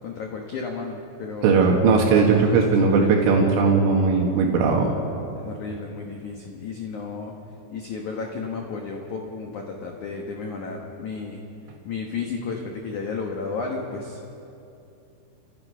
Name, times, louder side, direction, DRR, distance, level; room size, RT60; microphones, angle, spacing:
voice 1, 0.0-1.6 2.5-3.3 5.4-7.3 7.7-11.4 11.9-14.3, left 4 dB, 70° left, 1 dB, 1.8 m, -33 dB
voice 2, 1.4-4.9, right 4 dB, 80° right, 0 dB, 4.2 m, -18 dB
30.0 x 16.5 x 5.6 m, 2.8 s
omnidirectional pair, 5.6 m